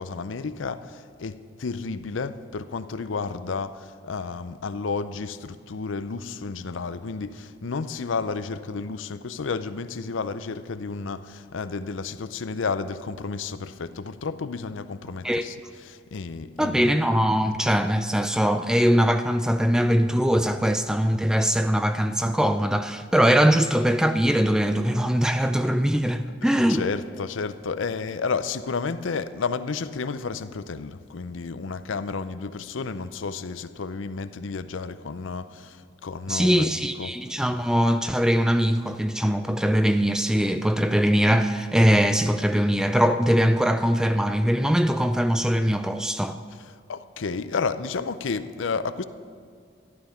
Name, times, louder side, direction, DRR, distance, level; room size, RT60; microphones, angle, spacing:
voice 1, 0.0-16.9 26.2-37.1 46.5-49.0, left 4 dB, 75° left, 0.6 m, -32 dB
voice 2, 16.6-26.8 36.3-46.4, equal, 5° right, 0.3 m, -21 dB
13.5 x 11.5 x 5.7 m
head